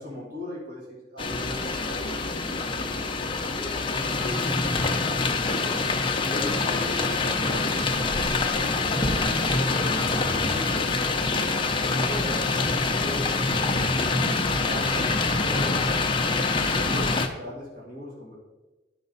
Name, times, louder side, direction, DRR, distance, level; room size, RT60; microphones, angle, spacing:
voice 1, 0.0-2.6 3.4-3.8 4.2-5.9 6.2-8.7 9.4-13.4 13.9-15.8 16.6-18.4, left 1 dB, 50° right, -5 dB, 2.6 m, -39 dB
sound 1, 1.2-17.3, left 3 dB, 25° left, 0.6 m, -25 dB
10.5 x 5.3 x 4.1 m, 1.1 s
head